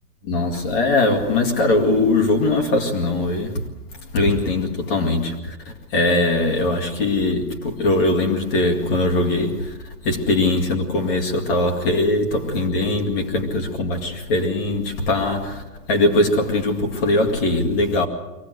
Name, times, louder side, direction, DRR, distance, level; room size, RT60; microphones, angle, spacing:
voice 1, 0.3-3.6 4.1-5.6 5.9-9.8 10.0-15.6 15.9-18.1, left 2 dB, 35° left, 2.3 m, -21 dB
24.0 x 17.5 x 8.0 m
hypercardioid pair, 160°, 47 cm